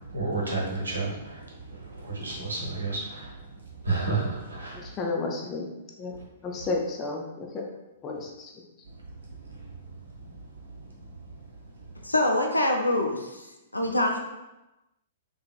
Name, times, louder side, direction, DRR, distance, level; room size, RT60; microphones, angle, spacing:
voice 1, 0.1-1.4 1.7-3.3 3.8-4.8, right 3 dB, 75° right, -3 dB, 0.8 m, -30 dB
voice 2, 4.7-5.7 6.0-7.6 8.0-8.7, left 3 dB, 25° left, 1 dB, 0.5 m, -32 dB
voice 3, 12.0-14.2, left 1 dB, 85° left, 2 dB, 0.4 m, -25 dB
2.9 x 2.7 x 2.3 m, 0.99 s
figure-of-eight pair, 110°, 0 cm